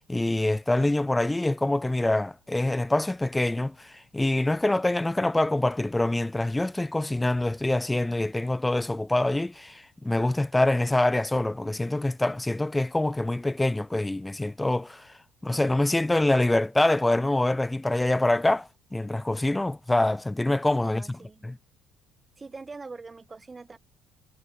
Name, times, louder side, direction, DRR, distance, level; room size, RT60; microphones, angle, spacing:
voice 1, 0.1-15.0 15.4-21.6, left 2 dB, 5° left, 0.7 m, -25 dB
voice 2, 20.8-21.4 22.4-23.8, right 4 dB, 15° right, 4.0 m, -43 dB
cardioid pair, 175°, 0 cm